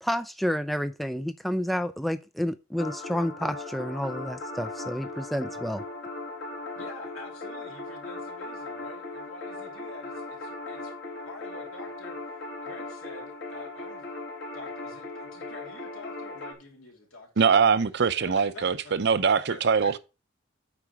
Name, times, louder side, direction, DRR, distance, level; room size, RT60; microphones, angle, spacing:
voice 1, 0.0-5.8, equal, ahead, 0.3 m, -30 dB
sound 1, 2.8-16.5, left 2 dB, 55° left, 1.9 m, -38 dB
voice 2, 6.7-11.0 11.2-12.2 12.6-14.0 14.5-17.7 18.2-18.9 19.3-19.9, left 2 dB, 80° left, 3.0 m, -47 dB
voice 3, 17.4-20.0, right 6 dB, 55° right, 0.6 m, -22 dB
8.6 x 5.0 x 4.5 m
head